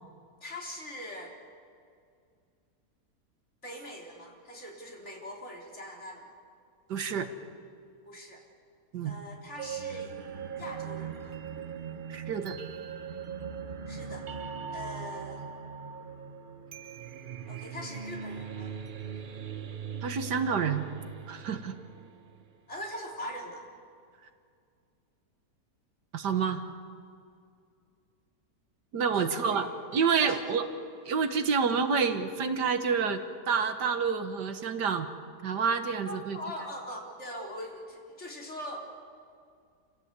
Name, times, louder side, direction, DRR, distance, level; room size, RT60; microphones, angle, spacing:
voice 1, 0.4-1.3 3.6-6.3 8.1-8.4 9.0-10.1 10.6-11.3 13.9-14.3 14.7-15.4 17.5-18.7 22.7-23.6 29.1-29.7 30.2-30.8 36.0-38.8, left 1 dB, 45° left, -1 dB, 4.0 m, -42 dB
voice 2, 6.9-7.3 8.9-9.1 12.1-12.6 20.0-20.9 21.3-21.7 26.1-26.6 28.9-29.7 29.9-30.6 31.1-33.2 33.5-35.1 35.4-36.4, right 6 dB, 90° right, 8 dB, 1.9 m, -28 dB
sound 1, 9.6-22.6, right 7 dB, 45° right, 0.7 m, -40 dB
29.0 x 16.0 x 8.3 m, 2.3 s
omnidirectional pair, 1.7 m